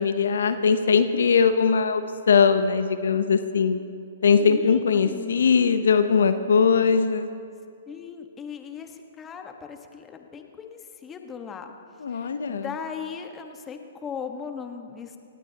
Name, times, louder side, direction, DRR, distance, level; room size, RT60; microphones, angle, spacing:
voice 1, 0.0-3.8 4.2-7.3 12.0-12.7, left 6 dB, 70° left, 10 dB, 0.8 m, -20 dB
voice 2, 4.4-5.4 7.9-11.7 12.1-15.2, left 6 dB, 20° left, 5 dB, 1.4 m, -38 dB
25.0 x 18.5 x 2.9 m, 2.4 s
hypercardioid pair, 125°, 0 cm